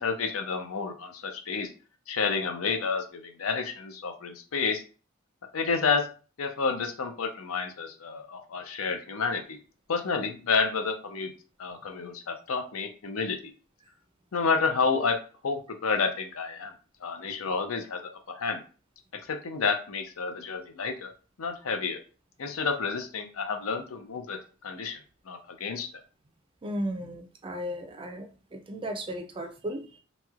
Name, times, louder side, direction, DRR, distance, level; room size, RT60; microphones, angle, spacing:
voice 1, 0.0-1.7 2.1-4.8 5.5-6.1 6.4-9.6 9.9-11.3 11.6-13.5 14.3-16.7 17.0-18.6 19.1-21.1 21.4-22.0 22.4-25.9, left 5 dB, 90° left, 6 dB, 0.6 m, -30 dB
voice 2, 26.6-29.9, equal, 25° right, 6 dB, 0.4 m, -35 dB
3.0 x 2.8 x 2.3 m, 0.36 s
head